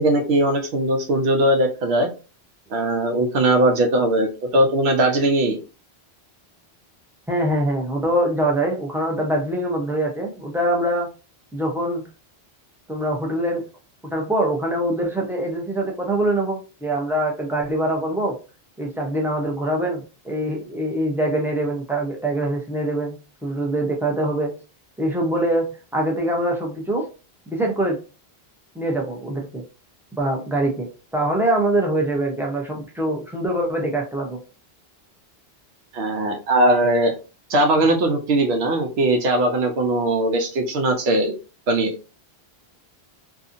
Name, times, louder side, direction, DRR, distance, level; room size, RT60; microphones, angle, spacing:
voice 1, 0.0-2.1 2.7-5.6 35.9-37.1 37.5-41.4 41.7-41.9, right 1 dB, 80° right, 4 dB, 0.9 m, -20 dB
voice 2, 7.3-11.1 11.5-12.0 12.9-13.6 14.1-18.3 18.8-23.2 23.4-24.5 25.0-27.1 27.5-28.0 28.7-29.6 30.1-30.9 31.1-34.4, right 1 dB, 5° right, -1 dB, 0.5 m, -23 dB
2.7 x 2.4 x 2.5 m, 0.33 s
omnidirectional pair, 1.1 m